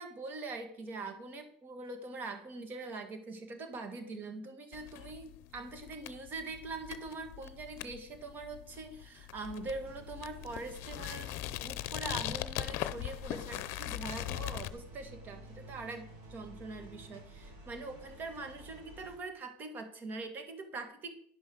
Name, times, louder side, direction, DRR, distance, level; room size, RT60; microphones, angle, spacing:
voice 1, 0.0-11.3 11.6-21.1, right 3 dB, 40° right, 7 dB, 1.9 m, -43 dB
sound 1, 4.7-14.7, left 14 dB, 60° left, 0.7 m, -40 dB
sound 2, 9.4-19.2, equal, 55° right, 5.1 m, -52 dB
11.0 x 5.6 x 6.3 m, 0.64 s
supercardioid pair, 100°, 5 cm